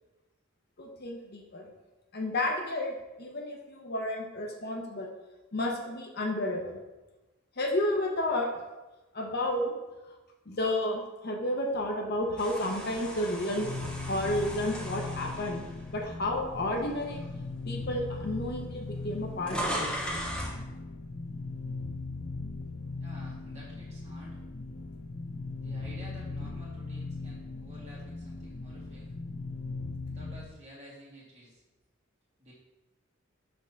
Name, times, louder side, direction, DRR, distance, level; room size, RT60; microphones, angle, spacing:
voice 1, 0.8-1.7 2.1-5.1 5.5-6.8 7.6-8.5 9.1-9.7 10.0-10.2 10.5-13.7 14.1-15.6 15.9-17.2 17.6-19.9, left 1 dB, 50° left, 1 dB, 0.9 m, -31 dB
sound 1, 12.4-16.6 17.1-17.3 18.2-18.3 18.5-20.6, equal, 5° left, 1.0 m, -37 dB
sound 2, 13.5-30.5, left 3 dB, 30° left, 0.5 m, -39 dB
voice 2, 23.0-24.4 25.6-29.1 30.1-31.6 32.4-32.5, equal, 30° right, -7 dB, 2.2 m, -51 dB
6.1 x 3.6 x 5.7 m, 1.1 s
head